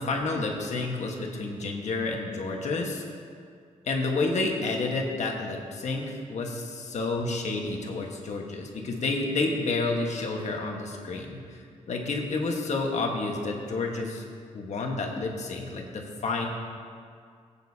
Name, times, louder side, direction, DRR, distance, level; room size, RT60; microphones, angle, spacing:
voice 1, 0.0-3.0 3.8-14.2 14.5-16.5, left 3 dB, 65° left, 1 dB, 1.5 m, -30 dB
16.0 x 8.9 x 2.9 m, 2.2 s
cardioid pair, 85°, 13 cm